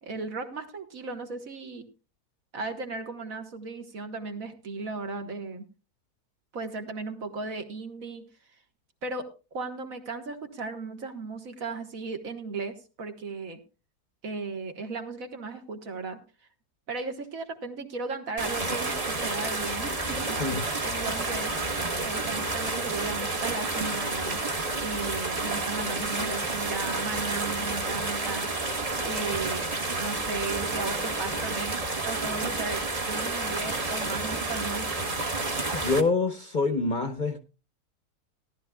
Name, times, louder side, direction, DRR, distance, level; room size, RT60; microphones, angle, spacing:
voice 1, 0.0-1.9 2.5-5.6 6.5-8.3 9.0-13.6 14.2-16.2 16.9-21.5 22.0-24.4 24.8-28.7 29.0-29.7 30.0-34.9, right 3 dB, 60° right, 5 dB, 1.9 m, -36 dB
sound 1, 18.4-36.0, right 3 dB, 25° right, 1.1 m, -30 dB
voice 2, 35.7-37.4, left 3 dB, 35° left, 6 dB, 1.0 m, -26 dB
17.5 x 12.0 x 2.3 m, 0.32 s
omnidirectional pair, 1.7 m